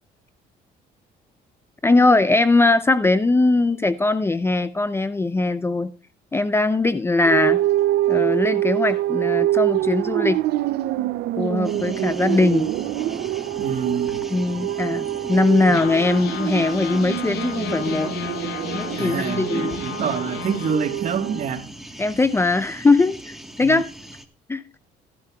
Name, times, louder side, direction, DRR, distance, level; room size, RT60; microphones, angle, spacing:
voice 1, 1.8-5.9 6.3-7.6 8.1-10.4 11.4-12.7 14.3-18.1 18.7-19.8 22.0-23.9 24.5-24.6, left 3 dB, 15° left, 0.5 m, -20 dB
sound 1, 7.2-21.5, right 14 dB, 75° right, 0.5 m, -25 dB
sound 2, 9.6-12.8 13.3-13.4 13.6-13.8 14.4-14.5 15.7-20.7, left 9 dB, 80° left, 0.8 m, -34 dB
sound 3, 11.6-24.3, right 1 dB, ahead, 1.3 m, -39 dB
voice 2, 13.6-14.2 18.9-21.7 23.6-23.8, right 6 dB, 45° right, 1.3 m, -26 dB
15.0 x 11.5 x 2.3 m
cardioid pair, 110°, 17 cm